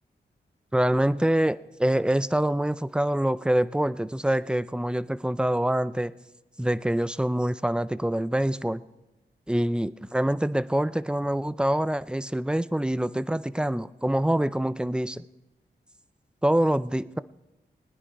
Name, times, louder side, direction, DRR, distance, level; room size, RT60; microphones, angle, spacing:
voice 1, 0.7-6.1 6.6-8.8 9.5-15.2 16.4-17.2, right 1 dB, 5° right, 16 dB, 0.5 m, -25 dB
19.5 x 9.9 x 4.7 m, 1.0 s
cardioid pair, 55°, 19 cm